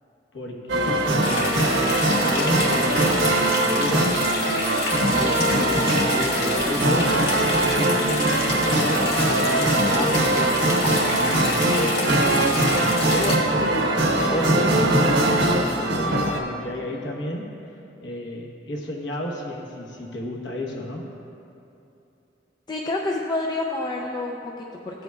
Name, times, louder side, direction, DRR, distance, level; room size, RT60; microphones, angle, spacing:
voice 1, 0.3-1.6 2.1-4.2 4.6-7.2 7.6-10.5 11.1-13.6 14.0-17.5 18.0-21.0, left 1 dB, 90° left, -1 dB, 1.1 m, -32 dB
sound 1, 0.7-16.4, right 1 dB, 80° right, 0.9 m, -21 dB
sound 2, 1.2-13.4, left 2 dB, 65° left, 1.6 m, -28 dB
voice 2, 22.7-25.0, left 2 dB, 25° left, -1 dB, 0.5 m, -28 dB
15.5 x 7.8 x 2.3 m, 2.8 s
head